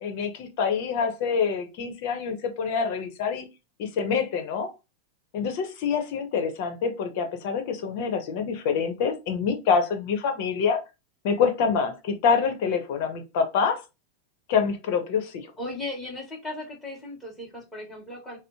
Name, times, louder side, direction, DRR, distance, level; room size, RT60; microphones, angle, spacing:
voice 1, 0.0-3.5 3.8-4.7 5.3-10.8 11.2-13.8 14.5-15.5, left 6 dB, 60° left, 0.9 m, -26 dB
voice 2, 15.6-18.4, left 2 dB, 10° left, 2.0 m, -36 dB
4.1 x 2.1 x 2.8 m
hypercardioid pair, 120°, 0 cm